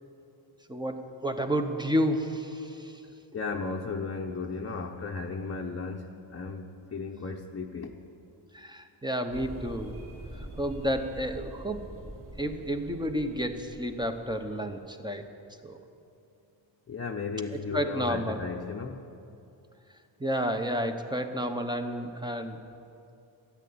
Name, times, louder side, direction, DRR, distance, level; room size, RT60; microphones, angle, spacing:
voice 1, 0.7-3.0 8.5-9.9 10.4-11.8 12.4-15.3 15.6-15.8 17.5-18.4 20.2-22.6, equal, 10° right, 6 dB, 1.0 m, -31 dB
voice 2, 3.3-7.9 16.9-19.0, left 4 dB, 30° left, 0 dB, 0.9 m, -35 dB
sound 1, 9.3-14.8, right 1 dB, 25° right, 3.7 m, -45 dB
13.0 x 10.0 x 8.7 m, 2.7 s
cardioid pair, 95°, 48 cm